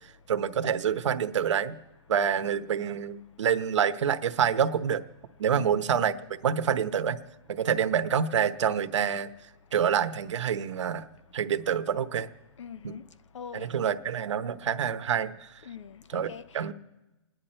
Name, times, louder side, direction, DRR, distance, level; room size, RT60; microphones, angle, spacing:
voice 1, 0.3-1.8 2.1-5.0 5.4-6.2 6.4-7.2 7.5-9.3 9.7-11.1 11.3-12.3 12.8-12.9 13.5-15.5 16.1-16.7, right 8 dB, 80° right, 1.0 m, -27 dB
voice 2, 5.5-5.9 12.6-13.7 15.6-16.6, left 7 dB, 90° left, 0.8 m, -43 dB
29.0 x 10.5 x 4.4 m
hypercardioid pair, 175°, 15 cm